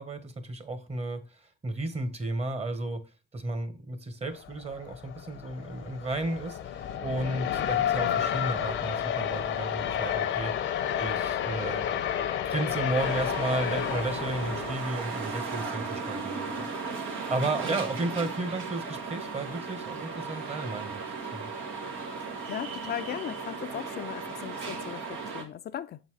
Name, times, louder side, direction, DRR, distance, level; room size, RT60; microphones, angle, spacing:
voice 1, 0.0-3.0 3.3-10.5 11.0-11.9 12.4-16.6 17.0-20.9 21.3-21.5, right 2 dB, 30° right, 1.2 m, -33 dB
sound 1, 4.4-14.8, left 10 dB, 75° left, 0.8 m, -31 dB
sound 2, 13.0-25.4, right 4 dB, 90° right, 1.3 m, -36 dB
voice 2, 22.2-26.0, left 10 dB, 55° left, 0.4 m, -38 dB
7.1 x 4.0 x 4.7 m
cardioid pair, 90°, 20 cm